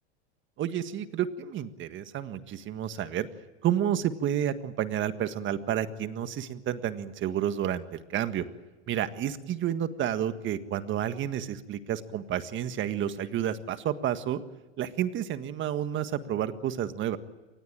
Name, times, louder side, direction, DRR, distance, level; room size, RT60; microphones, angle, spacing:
voice 1, 0.6-3.3 3.6-8.4 8.9-14.4 14.8-17.2, right 10 dB, 35° right, 11 dB, 1.7 m, -30 dB
24.5 x 20.0 x 9.0 m, 1.2 s
hypercardioid pair, 120°, 35 cm